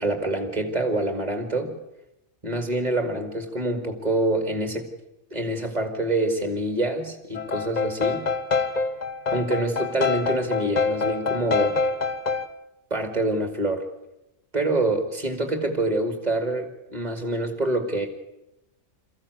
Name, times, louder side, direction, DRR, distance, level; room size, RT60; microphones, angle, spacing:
voice 1, 0.0-1.7 2.4-4.9 5.3-8.2 9.3-11.8 12.9-13.8 14.5-18.1, right 2 dB, 30° right, 5 dB, 2.5 m, -26 dB
sound 1, 7.3-12.5, left 4 dB, 35° left, 0.9 m, -26 dB
22.5 x 15.0 x 8.2 m, 0.91 s
omnidirectional pair, 1.4 m